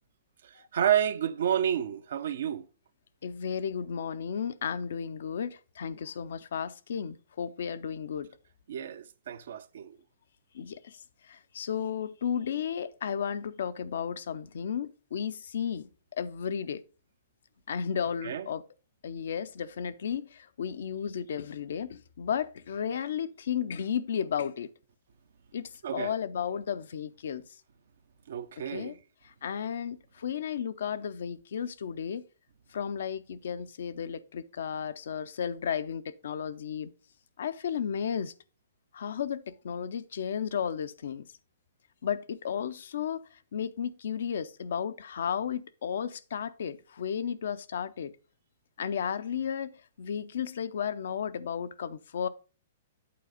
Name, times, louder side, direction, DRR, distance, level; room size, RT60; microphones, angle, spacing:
voice 1, 0.4-2.7 8.7-10.0 18.2-18.5 25.8-26.2 28.3-29.0, right 9 dB, 70° right, 0.6 m, -30 dB
voice 2, 3.2-8.3 10.5-11.0 11.3-15.9 16.2-16.8 17.7-18.6 19.0-24.7 25.5-27.4 28.7-28.9 29.2-32.2 32.7-36.9 37.4-38.3 38.9-41.3 42.0-43.2 43.5-48.1 48.8-52.3, left 8 dB, 70° left, 0.5 m, -33 dB
8.6 x 4.1 x 5.1 m
hypercardioid pair, 120°, 0 cm